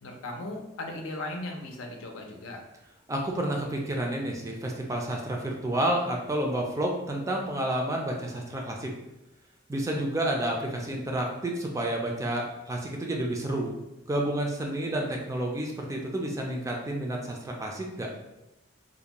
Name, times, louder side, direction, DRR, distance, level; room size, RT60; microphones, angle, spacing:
voice 1, 0.0-2.6, left 2 dB, 90° left, 2 dB, 0.5 m, -37 dB
voice 2, 3.1-8.9 9.7-13.7 14.1-18.1, right 1 dB, 15° right, 0 dB, 0.3 m, -30 dB
2.5 x 2.1 x 2.9 m, 0.93 s
head